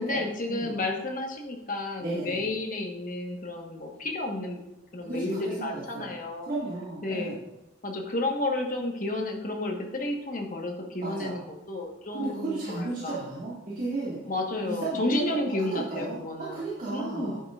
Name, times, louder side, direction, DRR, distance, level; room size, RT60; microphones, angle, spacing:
voice 1, 0.0-4.6 4.9-6.5 7.0-7.3 7.8-13.2 14.2-16.6 16.9-17.3, left 2 dB, 40° left, 1 dB, 1.3 m, -31 dB
voice 2, 2.0-2.4 5.0-6.1 6.4-7.4 11.0-11.4 12.1-14.2 14.6-15.4 15.7-17.4, right 2 dB, 40° right, -8 dB, 1.9 m, -34 dB
10.0 x 8.8 x 2.5 m, 0.99 s
head